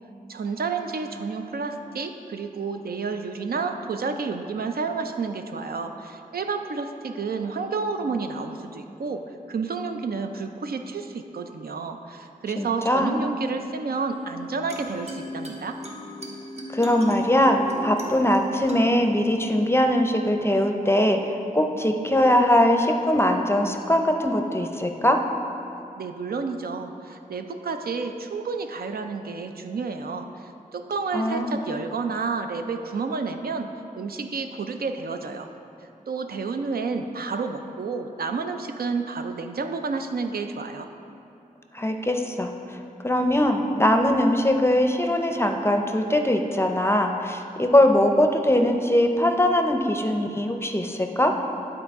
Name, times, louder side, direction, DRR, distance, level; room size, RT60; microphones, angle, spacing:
voice 1, 0.3-9.2 9.5-15.8 26.0-33.7 34.0-35.5 36.1-40.9, right 4 dB, 90° right, 6 dB, 0.4 m, -30 dB
voice 2, 12.6-13.2 16.7-25.2 31.1-31.6 41.7-42.5 43.0-51.3, left 1 dB, 15° left, 4 dB, 0.5 m, -21 dB
sound 1, 14.1-21.1, equal, 45° right, 1.0 m, -38 dB
11.5 x 4.0 x 3.5 m, 2.7 s
wide cardioid pair, 80°, 15 cm